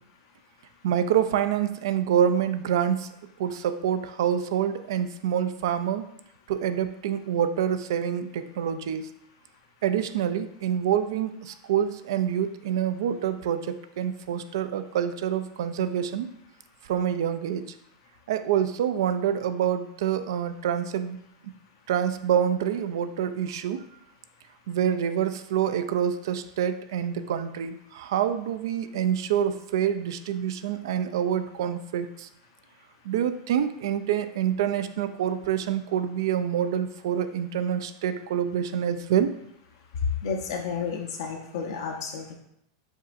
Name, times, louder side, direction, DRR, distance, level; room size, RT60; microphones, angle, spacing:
voice 1, 0.8-3.1 3.4-6.1 6.5-9.1 9.8-16.3 16.8-17.7 18.3-21.2 21.9-23.8 24.7-32.3 33.0-39.3, right 9 dB, 75° right, 11 dB, 0.4 m, -26 dB
voice 2, 40.2-42.3, left 5 dB, 75° left, 0 dB, 0.7 m, -32 dB
5.3 x 3.9 x 2.5 m, 0.76 s
supercardioid pair, 155°, 2 cm